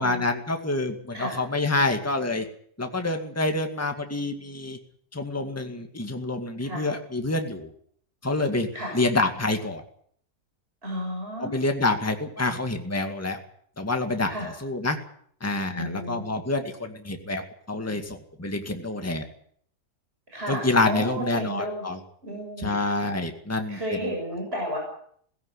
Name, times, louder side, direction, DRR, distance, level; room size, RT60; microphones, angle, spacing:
voice 1, 0.0-2.5 2.8-4.8 5.1-7.7 8.2-9.8 11.4-13.4 13.8-15.0 15.4-17.4 17.7-19.2 20.5-22.0 22.6-24.1, left 2 dB, 10° left, 5 dB, 2.1 m, -27 dB
voice 2, 10.8-11.5 14.3-14.5 15.8-16.3 20.3-21.8 22.2-22.8 23.7-24.8, equal, 35° right, -1 dB, 7.2 m, -32 dB
18.0 x 16.0 x 9.8 m, 0.63 s
omnidirectional pair, 1.7 m